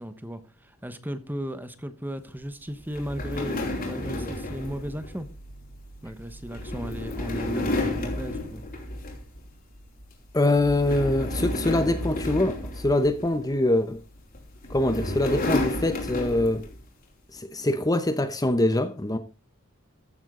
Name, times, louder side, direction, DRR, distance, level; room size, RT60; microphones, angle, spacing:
voice 1, 0.0-5.3 6.0-8.6, equal, 10° right, 1.1 m, -35 dB
sound 1, 2.9-9.5 9.8-10.1 10.5-13.5 14.3-16.8, left 1 dB, 45° left, 4.3 m, -32 dB
voice 2, 10.3-14.0 14.7-16.7 17.3-19.2, left 1 dB, 15° left, 0.8 m, -24 dB
14.5 x 9.0 x 3.7 m
head